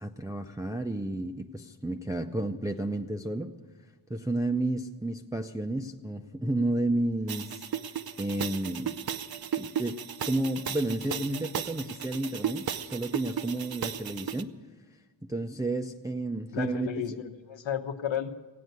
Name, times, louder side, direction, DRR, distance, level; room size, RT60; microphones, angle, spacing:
voice 1, 0.0-3.5 4.1-9.0 9.6-14.5 15.2-16.9, right 1 dB, 10° right, 4 dB, 0.4 m, -31 dB
sound 1, 7.3-14.4, right 8 dB, 50° right, 0.6 m, -35 dB
voice 2, 16.5-18.3, left 9 dB, 75° left, 7 dB, 1.1 m, -33 dB
16.0 x 9.2 x 9.3 m, 1.3 s
wide cardioid pair, 175°, 46 cm